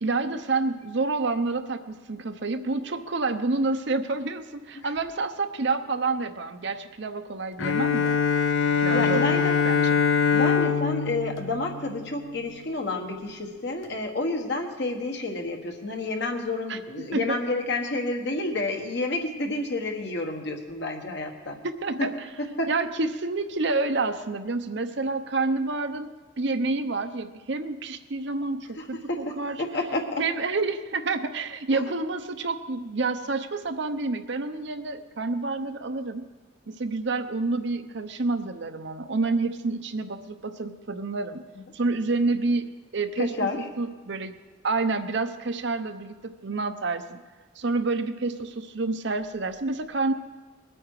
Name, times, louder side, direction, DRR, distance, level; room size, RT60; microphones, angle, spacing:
voice 1, 0.0-8.2 8.8-10.0 16.7-17.4 21.6-22.3 22.7-29.6 30.2-36.3 36.7-41.4 41.7-42.6 42.9-43.5 43.8-44.4 44.6-47.2 47.6-50.1, right 3 dB, 60° right, 8 dB, 0.8 m, -28 dB
Bowed string instrument, 7.6-12.5, left 6 dB, 85° left, 0.9 m, -23 dB
voice 2, 8.9-9.6 10.3-21.6 22.0-22.1 22.4-22.7 29.1-30.2 31.7-31.8 43.2-43.6, left 2 dB, 60° left, 3 dB, 1.5 m, -30 dB
21.0 x 8.7 x 4.8 m, 1.3 s
head